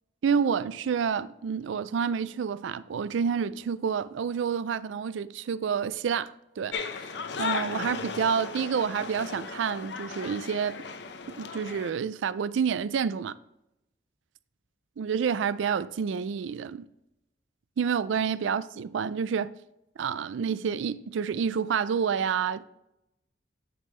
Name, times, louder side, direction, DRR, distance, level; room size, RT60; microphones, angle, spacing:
voice 1, 0.2-6.8 7.4-10.8 11.4-13.3 15.0-16.9 17.8-19.6 20.0-22.6, right 6 dB, 80° right, 0.4 m, -28 dB
sound 1, 6.7-11.9, left 5 dB, 65° left, 0.6 m, -36 dB
9.6 x 5.3 x 3.2 m
head